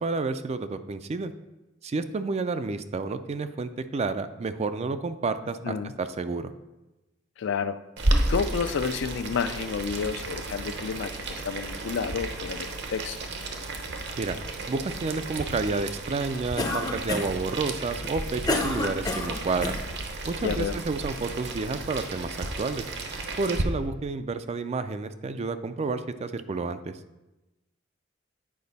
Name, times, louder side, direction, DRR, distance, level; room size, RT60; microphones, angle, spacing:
voice 1, 0.0-1.3 1.8-6.5 14.2-14.4 14.7-19.8 20.3-22.8 23.4-26.9, right 3 dB, 35° right, 11 dB, 0.4 m, -30 dB
voice 2, 7.4-7.8 8.3-13.2 20.4-20.8, left 6 dB, 65° left, 11 dB, 0.4 m, -30 dB
Boiling, 8.0-23.6, right 2 dB, 60° right, 0.9 m, -33 dB
Cough, 16.6-17.4 18.0-19.8, left 2 dB, 20° left, 0.6 m, -29 dB
8.6 x 5.0 x 4.0 m, 1.0 s
head